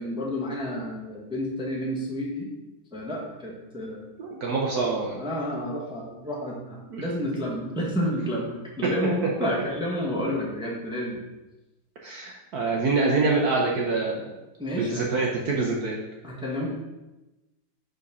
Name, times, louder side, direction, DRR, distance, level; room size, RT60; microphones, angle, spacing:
voice 1, 0.0-2.5 2.9-4.0 5.2-11.2 14.6-15.0 16.2-16.7, equal, 5° right, -2 dB, 0.4 m, -30 dB
voice 2, 4.2-5.2 6.9-7.0 12.0-14.3 14.8-16.0, right 3 dB, 65° right, -1 dB, 1.0 m, -25 dB
5.0 x 4.0 x 5.4 m, 1.0 s
omnidirectional pair, 2.3 m